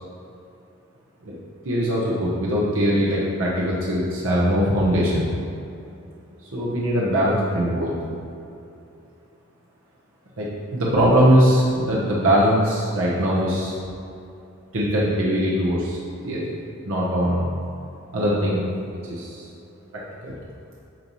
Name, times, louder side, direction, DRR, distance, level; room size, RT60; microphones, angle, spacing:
voice 1, 1.6-5.2 6.5-7.9 10.4-13.8 14.7-16.0 16.2-16.5 16.8-17.5 18.1-18.6 19.1-19.4 19.9-20.3, equal, 80° right, -6 dB, 1.1 m, -21 dB
9.3 x 3.1 x 5.5 m, 2.7 s
head